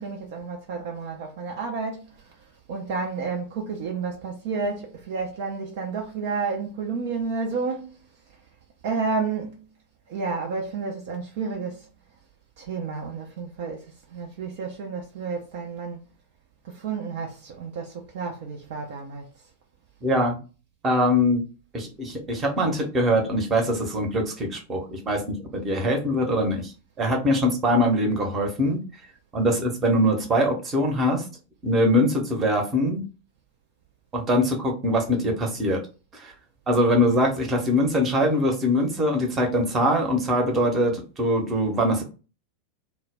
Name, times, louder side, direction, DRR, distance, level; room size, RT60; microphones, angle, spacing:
voice 1, 0.0-2.4 2.7-8.0 8.8-9.6 10.1-11.9 12.6-16.0 16.6-19.3, right 4 dB, 50° right, 0.4 m, -31 dB
voice 2, 20.0-20.4 20.8-21.4 21.7-26.7 27.0-28.8 29.3-31.2 31.6-33.0 34.1-35.8 36.1-36.3 36.7-42.0, equal, 25° right, 0.8 m, -23 dB
2.2 x 2.0 x 3.4 m
figure-of-eight pair, 90°, 0 cm